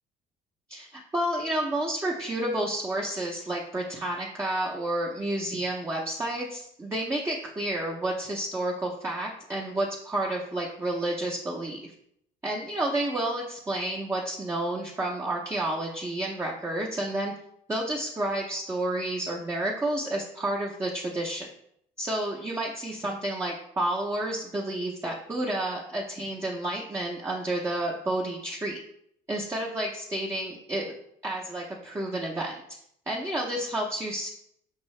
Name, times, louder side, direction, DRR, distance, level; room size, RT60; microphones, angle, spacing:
voice 1, 0.7-11.9 12.4-17.3 17.7-21.5 22.0-28.8 29.3-30.9 31.2-32.6 33.1-34.3, right 1 dB, 15° right, -2 dB, 0.6 m, -30 dB
5.4 x 2.7 x 3.1 m, 0.72 s
cardioid pair, 110°, 17 cm